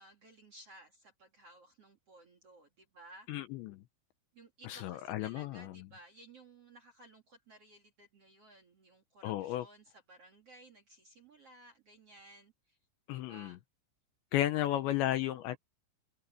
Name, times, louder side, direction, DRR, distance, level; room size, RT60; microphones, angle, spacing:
voice 1, 0.0-3.3 4.3-12.8 13.1-13.6 14.6-15.4, right 2 dB, 45° right, 2.1 m, -57 dB
voice 2, 3.3-3.8 4.7-5.7 9.2-9.6 13.1-13.5 14.3-15.6, left 13 dB, 80° left, 2.8 m, -33 dB
omnidirectional pair, 5.8 m